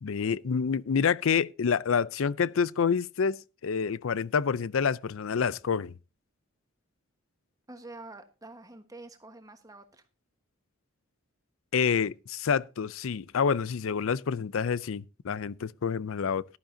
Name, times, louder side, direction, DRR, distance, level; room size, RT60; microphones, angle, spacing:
voice 1, 0.0-5.9 11.7-16.4, left 6 dB, 70° left, 0.5 m, -28 dB
voice 2, 7.7-10.0, right 2 dB, 15° right, 1.3 m, -47 dB
15.5 x 11.5 x 2.7 m
head